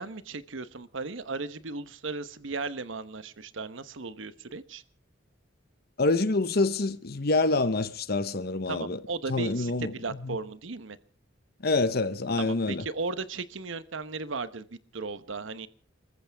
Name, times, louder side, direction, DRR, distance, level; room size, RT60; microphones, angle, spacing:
voice 1, 0.0-4.8 8.7-11.0 12.4-15.7, right 4 dB, 75° right, 1.0 m, -36 dB
voice 2, 6.0-9.0 9.3-10.4 11.6-12.8, left 3 dB, 50° left, 0.9 m, -27 dB
28.5 x 14.5 x 3.5 m
head